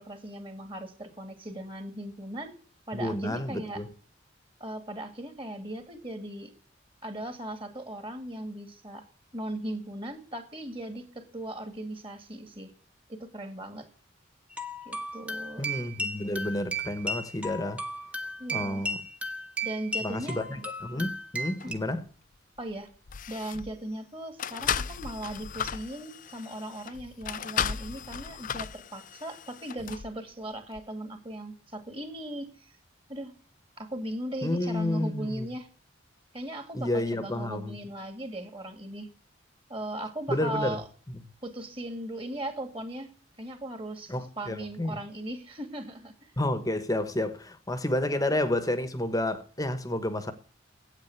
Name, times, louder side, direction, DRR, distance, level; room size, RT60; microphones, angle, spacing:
voice 1, 0.0-2.5 2.9-3.8 4.6-6.5 7.0-9.0 9.3-12.7 13.1-13.9 14.8-15.7 18.4-18.8 19.6-20.4 21.6-21.8 22.6-22.9 23.3-32.7 33.1-33.3 33.8-35.7 36.3-39.1 39.7-40.9 41.4-43.1 43.4-46.3 48.1-48.2, right 1 dB, 25° right, 2.1 m, -38 dB
voice 2, 2.9-3.9 15.6-17.8 18.5-19.0 20.0-22.0 34.4-35.5 36.7-37.8 40.3-40.8 41.1-41.2 44.1-45.0 46.4-50.3, left 1 dB, 20° left, 1.1 m, -30 dB
sound 1, 14.5-21.7, right 1 dB, 5° right, 1.0 m, -35 dB
sound 2, 21.6-21.8 22.6-22.7 23.1-23.8 24.4-30.1 30.7-30.8, left 8 dB, 40° left, 0.4 m, -35 dB
9.0 x 8.7 x 8.1 m
head